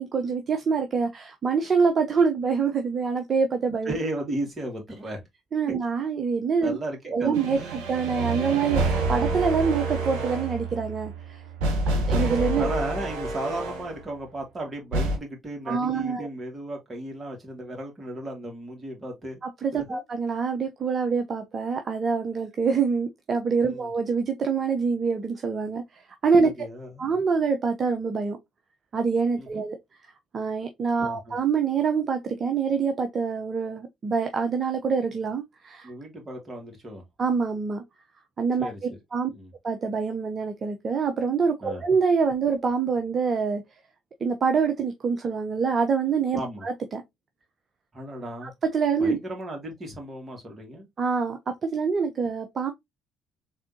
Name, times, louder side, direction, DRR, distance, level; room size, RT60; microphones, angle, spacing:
voice 1, 0.0-4.0 5.5-6.8 7.1-8.8 9.1-11.4 12.1-12.7 15.7-16.3 19.6-26.5 27.0-28.4 28.9-29.8 30.3-35.9 37.2-37.8 38.4-38.7 39.1-39.3 39.6-43.6 44.2-47.0 48.4-49.2 51.0-52.7, right 5 dB, 45° right, 0.8 m, -25 dB
voice 2, 3.8-5.2 6.6-7.8 11.9-12.1 12.6-19.4 19.7-20.0 23.6-23.9 26.4-27.1 29.4-29.6 31.0-31.3 35.8-37.0 38.6-38.8 39.3-39.5 41.6-41.8 46.3-46.7 47.9-48.5 49.0-50.9, right 1 dB, 30° right, 2.7 m, -35 dB
sound 1, 7.3-14.0 14.9-15.2, right 2 dB, 75° right, 1.4 m, -28 dB
4.1 x 3.5 x 2.8 m
hypercardioid pair, 50°, 0 cm